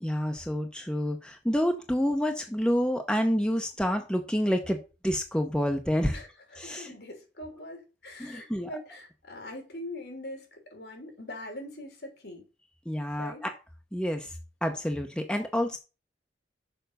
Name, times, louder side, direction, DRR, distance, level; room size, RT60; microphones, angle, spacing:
voice 1, 0.0-6.2 6.6-6.9 8.2-8.7 12.9-13.5 13.9-14.3 14.6-15.8, equal, 5° left, 0.8 m, -28 dB
voice 2, 6.1-12.4 13.2-13.4, left 1 dB, 60° left, 3.2 m, -42 dB
6.9 x 5.2 x 6.7 m
head